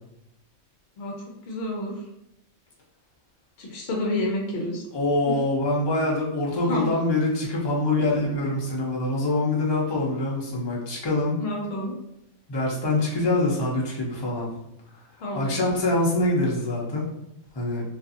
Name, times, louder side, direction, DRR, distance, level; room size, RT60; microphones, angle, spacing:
voice 1, 1.4-1.9 3.6-4.8 5.3-5.4 6.6-6.9 7.9-8.1 11.4-11.9 15.2-15.5, left 1 dB, 60° left, -1 dB, 0.7 m, -29 dB
voice 2, 4.9-11.4 12.5-14.5 15.3-17.0 17.5-17.8, left 2 dB, 45° left, -4 dB, 0.3 m, -24 dB
2.5 x 2.5 x 2.5 m, 0.85 s
omnidirectional pair, 1.5 m